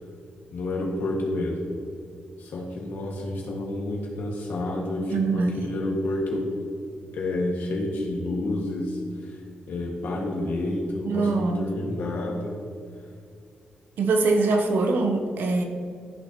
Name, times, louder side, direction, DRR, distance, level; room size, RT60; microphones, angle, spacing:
voice 1, 0.5-1.6 2.4-6.5 7.1-9.4 9.7-12.6, left 1 dB, 80° left, -2 dB, 2.0 m, -29 dB
voice 2, 5.1-5.7 11.0-11.7 14.0-15.6, right 3 dB, 80° right, 4 dB, 1.0 m, -23 dB
14.0 x 6.6 x 3.0 m, 2.3 s
wide cardioid pair, 155°, 3 cm